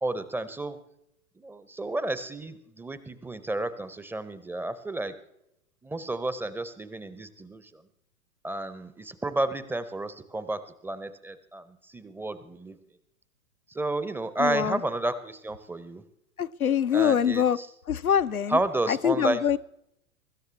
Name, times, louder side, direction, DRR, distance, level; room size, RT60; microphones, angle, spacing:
voice 1, 0.0-0.8 1.4-5.1 5.8-7.8 8.4-12.8 13.7-16.0 16.9-17.7 18.5-19.6, right 2 dB, 5° right, 0.6 m, -31 dB
voice 2, 14.4-14.8 16.4-17.6 17.9-18.6 18.9-19.6, left 8 dB, 85° left, 0.6 m, -24 dB
23.5 x 13.0 x 3.2 m
figure-of-eight pair, 95°, 42 cm